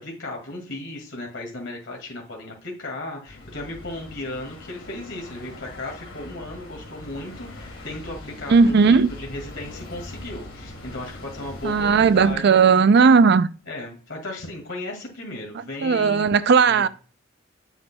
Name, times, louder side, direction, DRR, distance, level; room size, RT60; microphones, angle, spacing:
voice 1, 0.0-12.6 13.7-16.2 16.7-16.8, left 1 dB, 70° left, 2.1 m, -35 dB
sound 1, 3.3-12.3, left 2 dB, 90° left, 2.5 m, -41 dB
voice 2, 8.5-9.1 11.6-13.5 15.8-16.9, right 5 dB, 60° right, 0.4 m, -16 dB
7.9 x 7.1 x 2.2 m
head